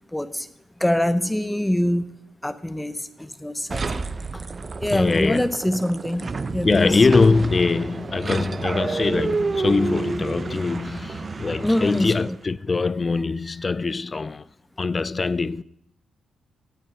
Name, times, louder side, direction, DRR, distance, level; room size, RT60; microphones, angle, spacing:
voice 1, 0.1-0.5 0.8-2.1 2.4-4.0 4.3-4.4 4.8-7.0 11.6-12.4, left 1 dB, 5° left, 0.9 m, -24 dB
sound 1, 3.7-12.4, right 4 dB, 35° right, 0.7 m, -30 dB
voice 2, 4.9-5.5 6.6-14.5 14.8-15.6, left 4 dB, 30° left, 0.4 m, -22 dB
18.0 x 8.7 x 4.5 m
cardioid pair, 100°, 0 cm